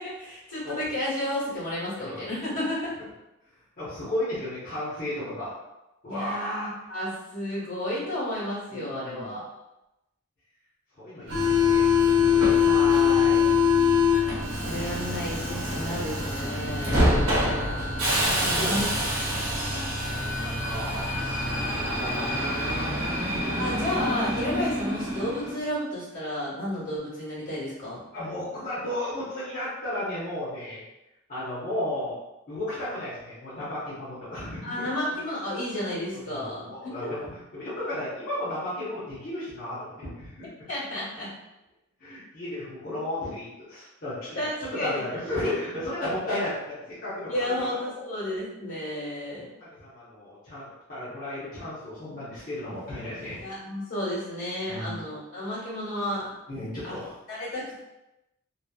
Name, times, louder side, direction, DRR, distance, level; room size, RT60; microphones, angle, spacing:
voice 1, 0.0-2.9 6.1-9.4 11.2-13.5 14.4-17.0 18.2-18.9 19.5-19.9 23.6-28.0 34.6-37.1 40.7-41.3 44.3-45.0 47.3-49.5 53.4-56.3 56.8-57.0 57.3-57.8, left 1 dB, 75° left, -7 dB, 1.3 m, -32 dB
voice 2, 3.8-5.5 6.0-6.7 8.7-9.4 11.0-12.6 18.2-18.8 19.4-21.5 21.9-23.4 28.1-30.8 31.3-32.2 32.5-34.9 36.1-40.5 42.0-47.5 47.9-48.0 49.6-53.6 54.7-55.0 56.5-57.1, left 1 dB, 45° left, -11 dB, 0.8 m, -34 dB
Subway metro underground, 11.3-25.6, left 4 dB, 85° right, 0.8 m, -24 dB
2.8 x 2.0 x 2.2 m, 0.95 s
head